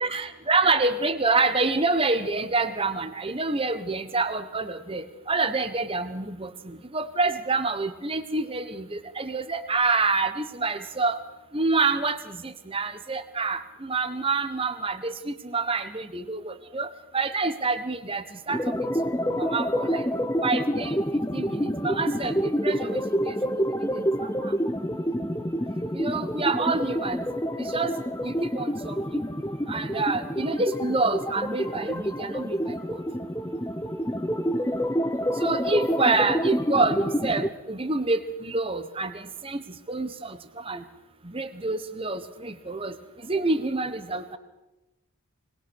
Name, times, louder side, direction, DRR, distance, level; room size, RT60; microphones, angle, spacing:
voice 1, 0.0-6.5 6.9-11.2 11.5-16.9 17.1-18.6 19.3-20.1 20.4-21.0 21.3-23.4 23.8-24.5 25.9-27.2 27.6-27.9 28.2-29.2 29.7-32.6 35.4-39.6 39.9-40.4 40.6-40.8 41.2-42.9 43.3-44.4, right 3 dB, 25° right, 10 dB, 1.2 m, -27 dB
sound 1, 18.5-37.5, equal, 15° left, 0.7 m, -28 dB
21.0 x 20.5 x 6.4 m, 0.98 s
head